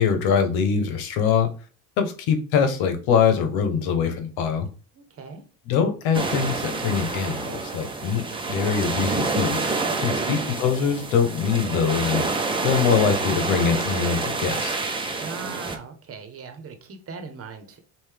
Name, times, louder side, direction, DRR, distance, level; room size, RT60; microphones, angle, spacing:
voice 1, 0.0-1.5 2.0-4.7 5.7-9.7 10.0-12.2 12.6-14.7, left 7 dB, 80° left, 7 dB, 1.1 m, -23 dB
voice 2, 4.9-5.4 9.8-10.3 15.2-17.8, right 4 dB, 40° right, 7 dB, 1.1 m, -39 dB
sound 1, 6.1-15.8, right 3 dB, 15° right, 0.8 m, -28 dB
5.5 x 2.6 x 3.4 m, 0.37 s
supercardioid pair, 105°, 37 cm